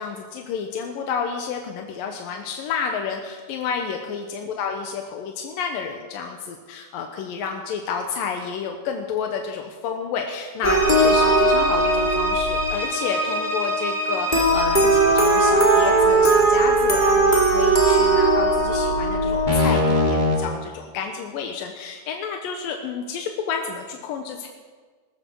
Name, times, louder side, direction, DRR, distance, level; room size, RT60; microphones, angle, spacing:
voice 1, 0.0-24.5, left 6 dB, 90° left, 3 dB, 2.9 m, -30 dB
sound 1, 10.6-20.4, right 1 dB, 15° left, 2.2 m, -19 dB
20.5 x 13.5 x 4.7 m, 1.4 s
omnidirectional pair, 3.9 m